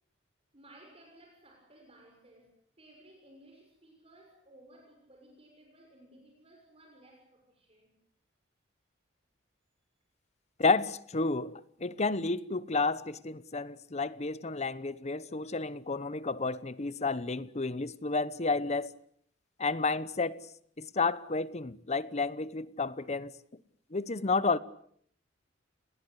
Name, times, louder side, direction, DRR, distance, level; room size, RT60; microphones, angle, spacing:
voice 1, 0.5-7.9, right 1 dB, 30° right, 6.4 m, -58 dB
voice 2, 10.6-18.9 19.6-20.4 20.8-23.3 23.9-24.6, left 3 dB, 35° left, 1.0 m, -31 dB
30.0 x 20.5 x 8.2 m
head